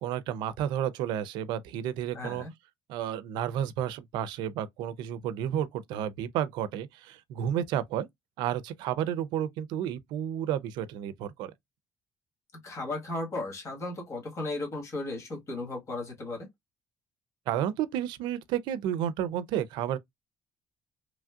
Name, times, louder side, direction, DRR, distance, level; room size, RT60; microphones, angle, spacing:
voice 1, 0.0-2.4 2.9-8.1 8.4-11.5 17.5-20.0, right 10 dB, 90° right, 0.4 m, -31 dB
voice 2, 2.1-2.5 12.6-16.5, left 2 dB, 40° left, 1.4 m, -35 dB
3.1 x 2.5 x 2.3 m
cardioid pair, 120°, 8 cm